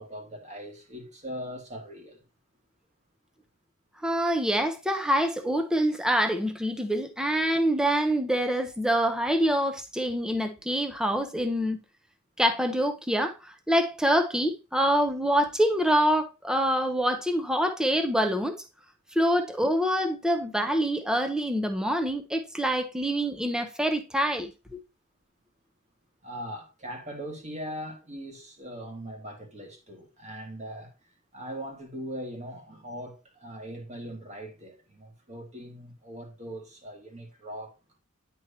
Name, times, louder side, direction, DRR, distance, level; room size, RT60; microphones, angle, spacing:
voice 1, 0.0-2.2 26.2-30.9 31.3-37.7, equal, 30° right, 1.8 m, -40 dB
voice 2, 4.0-11.8 12.4-18.6 19.1-24.8, equal, 5° right, 0.7 m, -26 dB
9.9 x 4.5 x 2.7 m
head